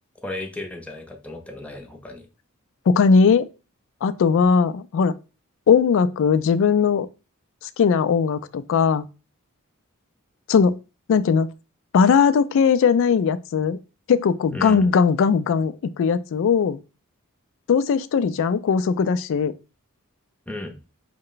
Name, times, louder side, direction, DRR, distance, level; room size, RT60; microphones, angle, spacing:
voice 1, 0.2-2.3 14.5-14.9 20.5-20.8, left 2 dB, 5° left, 0.5 m, -34 dB
voice 2, 2.9-3.5 4.0-5.1 5.7-7.1 7.8-9.1 10.5-10.8 11.1-11.5 11.9-13.8 14.1-16.8 17.7-19.5, left 6 dB, 65° left, 0.3 m, -19 dB
5.3 x 2.1 x 3.8 m
head